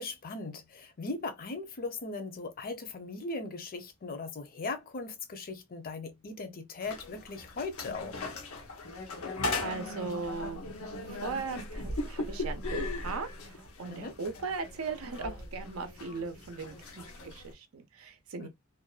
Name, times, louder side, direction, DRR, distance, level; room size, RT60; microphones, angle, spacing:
voice 1, 0.0-8.3 13.9-14.2 18.4-18.5, left 3 dB, 45° left, 0.6 m, -39 dB
sound 1, 6.8-17.5, left 2 dB, 85° left, 0.7 m, -38 dB
voice 2, 9.6-10.6 11.1-18.5, right 4 dB, 80° right, 0.5 m, -38 dB
2.5 x 2.2 x 2.3 m
head